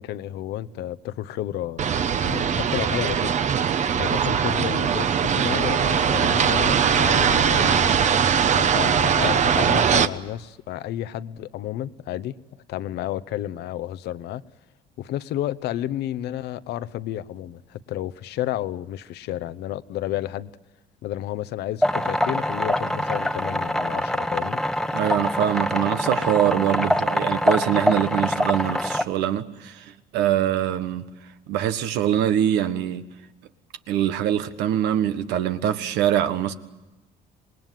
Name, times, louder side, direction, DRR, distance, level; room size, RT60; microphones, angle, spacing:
voice 1, 0.0-1.9 2.2-3.3 3.9-7.9 8.5-12.3 12.7-14.4 15.0-20.5 21.0-24.6, left 13 dB, 80° left, 1.0 m, -31 dB
sound 1, 1.8-10.1, right 7 dB, 45° right, 1.0 m, -21 dB
sound 2, 21.8-29.0, left 1 dB, 5° left, 1.1 m, -24 dB
voice 2, 24.9-31.0 31.5-33.0 33.9-36.5, right 11 dB, 90° right, 1.5 m, -23 dB
26.5 x 19.5 x 9.3 m
cardioid pair, 110°, 17 cm